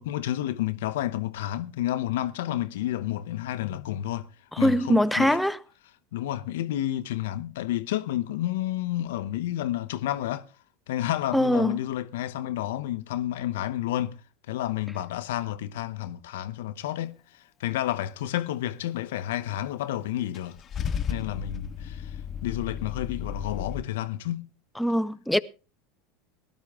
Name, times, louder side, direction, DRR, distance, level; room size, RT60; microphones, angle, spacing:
voice 1, 0.0-4.3 4.6-5.4 6.1-10.5 10.9-14.2 14.5-20.6 21.1-22.2 22.4-24.5, left 13 dB, 70° left, 0.8 m, -30 dB
voice 2, 4.6-5.6 11.3-11.8 24.8-25.4, equal, 5° left, 0.6 m, -22 dB
Car / Engine starting / Idling, 20.3-23.8, left 7 dB, 35° left, 1.0 m, -34 dB
19.0 x 11.5 x 3.5 m
hypercardioid pair, 85°, 0 cm